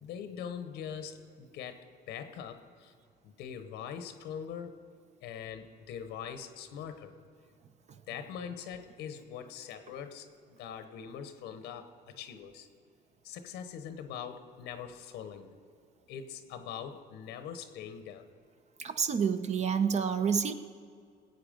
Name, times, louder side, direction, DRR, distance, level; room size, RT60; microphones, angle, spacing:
voice 1, 0.0-2.9 3.2-4.9 5.2-7.1 8.1-12.7 13.2-15.5 16.1-18.3, left 8 dB, 90° left, 10 dB, 1.0 m, -42 dB
voice 2, 18.8-20.5, right 6 dB, 40° right, 10 dB, 0.7 m, -28 dB
18.5 x 8.1 x 5.2 m, 2.2 s
cardioid pair, 110°, 17 cm